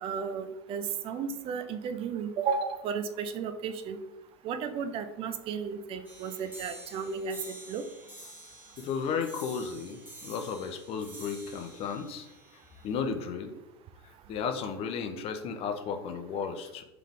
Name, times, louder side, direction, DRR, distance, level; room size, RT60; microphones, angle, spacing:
voice 1, 0.0-4.0 4.4-7.8, right 6 dB, 40° right, 10 dB, 0.4 m, -34 dB
sound 1, 6.0-13.1, right 1 dB, 15° right, 1.4 m, -49 dB
voice 2, 8.8-12.3 12.8-13.5 14.3-16.8, left 6 dB, 45° left, 6 dB, 0.6 m, -34 dB
3.6 x 3.4 x 3.5 m, 1.1 s
hypercardioid pair, 80°, 14 cm